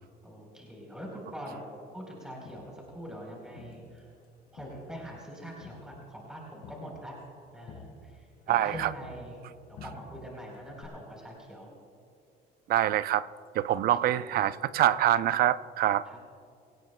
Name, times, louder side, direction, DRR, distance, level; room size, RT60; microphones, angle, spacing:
voice 1, 0.2-1.7 1.9-4.1 4.5-7.1 7.5-9.4 9.7-11.7 13.8-14.8 16.0-16.2, equal, 5° right, 4.0 m, -44 dB
Crowd, 2.5-4.3 4.6-9.5 9.8-10.4 10.8-10.9, left 3 dB, 60° left, 3.3 m, -51 dB
voice 2, 8.5-8.9 12.7-13.3 13.6-16.0, right 12 dB, 65° right, 0.5 m, -25 dB
25.0 x 17.5 x 2.3 m
cardioid pair, 110°, 17 cm